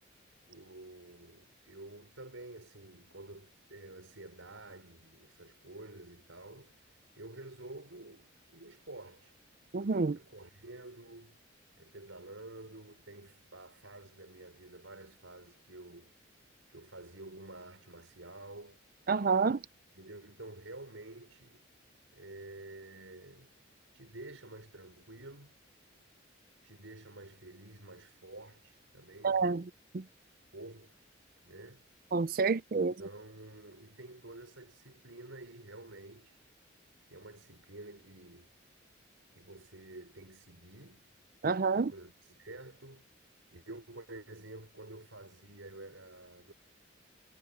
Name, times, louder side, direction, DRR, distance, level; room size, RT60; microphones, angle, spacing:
voice 1, 0.5-9.4 10.1-11.4 11.8-16.1 16.7-18.8 20.0-21.6 22.1-23.6 23.9-25.6 26.6-29.5 30.5-31.0 31.4-31.8 33.0-36.4 37.1-38.5 39.3-41.0 41.7-43.1 43.5-46.5, right 2 dB, 85° right, 5.4 m, -50 dB
voice 2, 9.7-10.2 19.1-19.6 29.2-30.0 32.1-33.0 41.4-41.9, right 4 dB, 45° right, 0.5 m, -29 dB
head